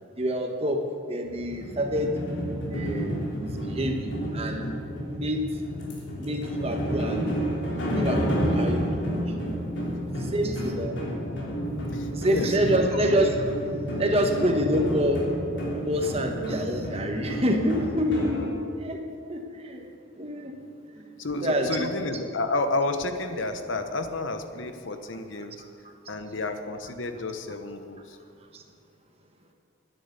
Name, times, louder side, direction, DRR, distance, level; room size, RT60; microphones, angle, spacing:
voice 1, 0.2-0.8 1.1-2.1 2.7-4.6 5.1-5.5 6.2-7.3 7.9-9.1 10.1-10.9 12.1-13.4 14.0-15.2 15.8-19.0 19.3-19.9 20.2-20.5 21.4-21.9 28.5-28.6, equal, 30° right, 3 dB, 1.4 m, -27 dB
sound 1, 1.2-18.5, equal, 70° left, 3.3 m, -30 dB
voice 2, 11.9-13.1 21.2-25.6 26.1-28.2, left 2 dB, 90° left, 8 dB, 1.0 m, -31 dB
11.0 x 10.0 x 8.1 m, 2.3 s
head